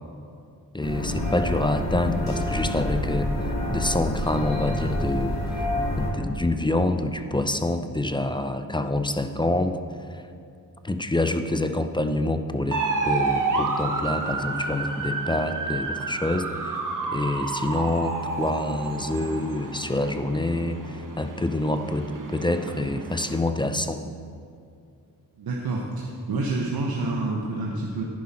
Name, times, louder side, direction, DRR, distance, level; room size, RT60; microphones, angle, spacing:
voice 1, 0.7-5.6 6.0-9.8 10.1-10.2 10.8-16.8 17.1-24.0, left 2 dB, 15° left, 8 dB, 0.5 m, -27 dB
sound 1, 0.8-6.1, left 1 dB, 50° left, 3.1 m, -27 dB
sound 2, 12.7-23.4, right 3 dB, 60° right, 1.1 m, -30 dB
voice 2, 25.4-28.0, right 2 dB, 85° right, -2 dB, 1.1 m, -28 dB
10.5 x 10.0 x 4.3 m, 2.4 s
cardioid pair, 85°, 36 cm